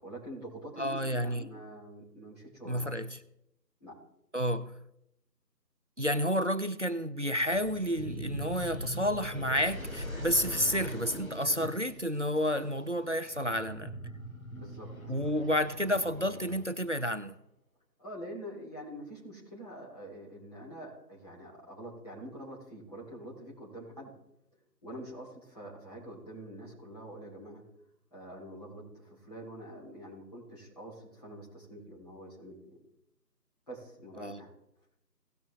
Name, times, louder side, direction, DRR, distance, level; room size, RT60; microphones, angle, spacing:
voice 1, 0.0-2.9 3.8-4.0 14.6-15.2 18.0-24.1 24.8-27.6 28.1-32.8 33.7-34.5, right 1 dB, 25° left, 3.5 m, -46 dB
voice 2, 0.8-1.4 2.7-3.2 4.3-4.7 6.0-13.9 15.1-17.3 34.2-34.4, equal, 45° right, 0.5 m, -30 dB
sound 1, 7.5-17.0, right 1 dB, 55° left, 2.1 m, -42 dB
17.5 x 6.1 x 3.7 m
figure-of-eight pair, 165°, 50 cm